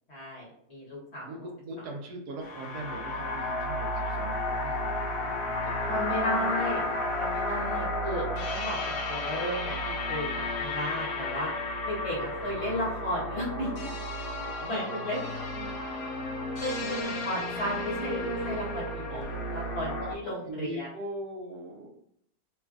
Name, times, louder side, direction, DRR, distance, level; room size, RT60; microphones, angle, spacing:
voice 1, 0.1-1.2 5.9-6.8 7.2-11.5 11.8-13.8 14.7-15.2 16.6-19.2 19.5-20.9, equal, 45° left, -5 dB, 1.0 m, -34 dB
voice 2, 1.2-6.7 14.4-15.8 16.8-17.2 19.1-19.2 19.9-21.9, right 2 dB, 75° right, 2 dB, 1.1 m, -41 dB
sound 1, 2.4-20.2, left 2 dB, 75° left, 0.7 m, -32 dB
3.0 x 2.3 x 2.4 m, 0.72 s
omnidirectional pair, 1.8 m